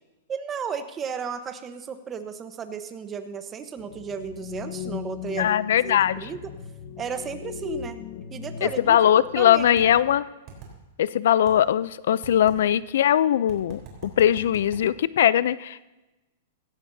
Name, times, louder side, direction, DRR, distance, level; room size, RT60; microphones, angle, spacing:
voice 1, 0.3-6.4 7.0-8.0 8.3-9.0 9.4-9.8, right 6 dB, 20° right, 9 dB, 1.0 m, -34 dB
sound 1, 3.8-10.2, left 8 dB, 50° left, 1.1 m, -38 dB
voice 2, 5.4-6.3 8.6-10.2 11.0-15.9, left 10 dB, 70° left, 18 dB, 0.4 m, -21 dB
sound 2, 9.8-9.9 10.5-10.7 11.5-11.6 12.2-12.6 13.5-14.8, right 8 dB, 35° right, 3.7 m, -43 dB
16.5 x 16.0 x 2.7 m, 1.1 s
hypercardioid pair, 150°, 0 cm